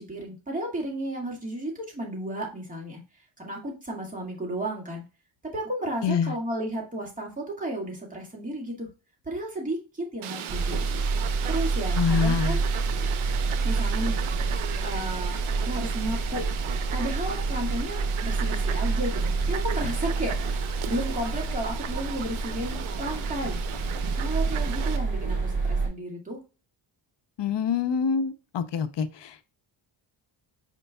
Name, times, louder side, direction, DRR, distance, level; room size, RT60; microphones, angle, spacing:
voice 1, 0.0-3.0 3.4-5.0 5.5-8.9 9.3-10.9 11.5-12.6 13.6-16.4 16.9-23.6 24.1-26.4, right 1 dB, 15° right, 1.9 m, -33 dB
voice 2, 6.0-6.3 12.0-12.6 27.4-29.4, left 6 dB, 60° left, 0.7 m, -26 dB
Fowl, 10.2-25.0, right 10 dB, 85° right, 0.7 m, -37 dB
sound 1, 10.5-25.9, right 3 dB, 35° right, 2.2 m, -28 dB
5.2 x 4.5 x 2.2 m
cardioid pair, 90°, 48 cm